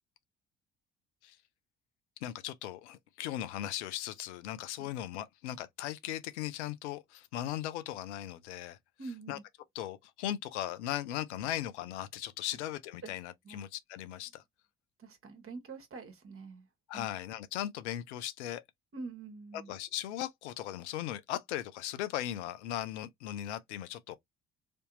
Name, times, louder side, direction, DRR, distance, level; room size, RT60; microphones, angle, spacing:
voice 1, 2.2-8.8 9.3-9.4 9.8-14.4 16.9-18.6 19.7-24.2, left 12 dB, 85° left, 0.5 m, -38 dB
voice 2, 9.0-9.4 13.0-13.1 13.4-13.6 15.0-16.7 16.9-17.1 18.9-19.7, right 4 dB, 40° right, 1.3 m, -45 dB
3.4 x 2.7 x 2.5 m
hypercardioid pair, 50°, 34 cm